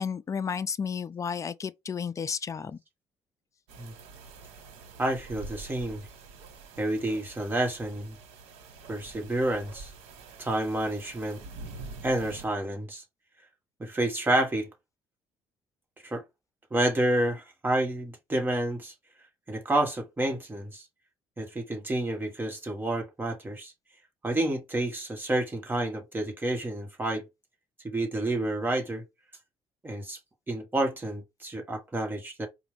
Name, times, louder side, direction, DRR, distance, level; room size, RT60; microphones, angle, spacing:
voice 1, 0.0-2.8, left 6 dB, 30° left, 0.5 m, -32 dB
sound 1, 3.7-12.5, right 3 dB, 90° right, 1.2 m, -46 dB
voice 2, 5.0-6.0 6.8-8.1 8.9-9.9 10.4-11.4 12.0-13.0 13.8-14.7 16.0-16.2 16.7-18.9 19.5-20.8 21.4-23.7 24.2-27.2 27.8-29.0 29.8-30.2 30.5-32.5, right 1 dB, 20° right, 1.6 m, -29 dB
4.8 x 2.5 x 3.3 m
cardioid pair, 100°, 10 cm